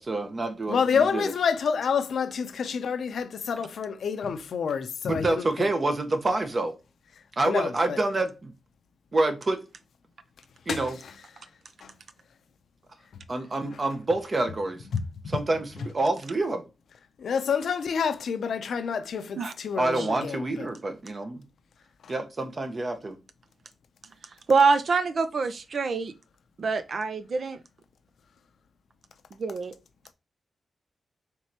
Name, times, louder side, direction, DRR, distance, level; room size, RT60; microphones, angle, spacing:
voice 1, 0.0-1.3 5.1-6.8 7.4-8.5 9.1-9.6 10.7-11.0 13.3-14.8 15.3-16.6 19.8-21.4 22.1-23.1, right 2 dB, 45° right, 1.0 m, -27 dB
voice 2, 0.7-5.7 7.4-8.0 10.7-10.8 11.8-11.9 14.9-15.0 17.2-20.7 22.0-22.1, left 6 dB, 75° left, 0.5 m, -28 dB
voice 3, 24.5-26.1 26.6-27.6 29.4-29.7, right 4 dB, 65° right, 0.6 m, -25 dB
4.5 x 3.4 x 2.9 m
cardioid pair, 55°, 0 cm